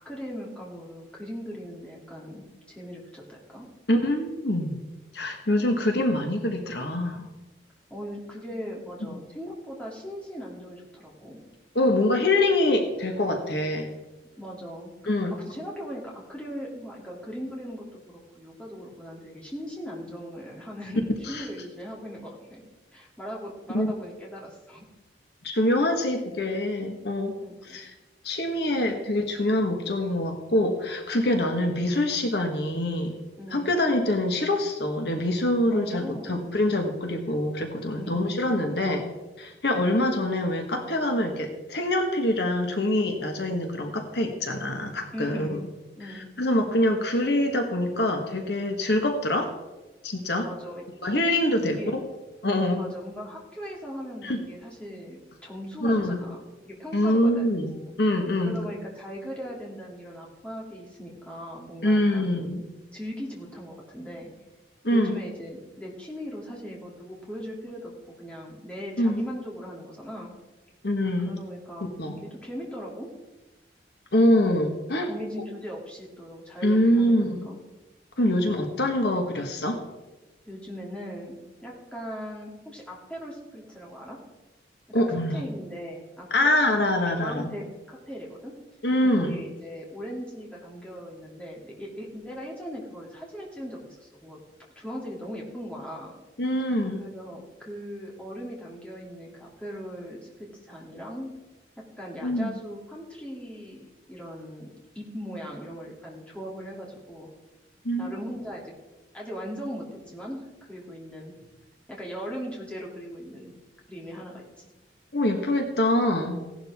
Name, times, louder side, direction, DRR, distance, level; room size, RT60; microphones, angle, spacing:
voice 1, 0.0-3.7 7.9-11.4 14.4-22.6 22.9-24.8 27.4-27.8 33.4-33.7 35.7-36.4 38.0-38.8 45.1-45.6 46.0-46.3 50.4-50.8 51.6-52.0 52.7-56.4 56.6-57.9 58.4-62.4 62.9-64.3 64.9-70.3 71.2-73.1 74.3-74.5 75.1-77.6 78.3-78.5 80.5-81.4 81.6-84.2 84.9-86.5 86.9-88.5 89.1-94.4 94.8-96.1 97.0-100.3 100.6-101.3 102.0-104.7 104.9-107.3 108.0-108.6 109.1-111.5 111.9-113.5 113.9-114.7, equal, 5° left, -4 dB, 2.8 m, -39 dB
voice 2, 3.9-4.8 5.1-7.3 11.7-13.9 15.1-15.3 21.3-21.4 23.7-23.9 25.4-27.4 27.7-27.9 28.2-33.1 33.5-39.0 39.4-45.6 46.1-49.5 50.0-50.5 51.0-52.0 52.4-52.8 54.2-54.4 55.8-56.2 56.9-57.7 58.0-58.6 61.8-62.6 64.8-65.2 69.0-69.2 70.8-71.4 72.0-72.2 74.1-75.1 76.6-77.5 78.2-79.8 84.9-85.4 86.3-87.5 88.8-89.4 96.4-97.0 102.2-102.5 107.8-108.1 115.1-116.4, left 1 dB, 65° left, 4 dB, 1.5 m, -25 dB
17.0 x 11.5 x 3.6 m, 1.1 s
head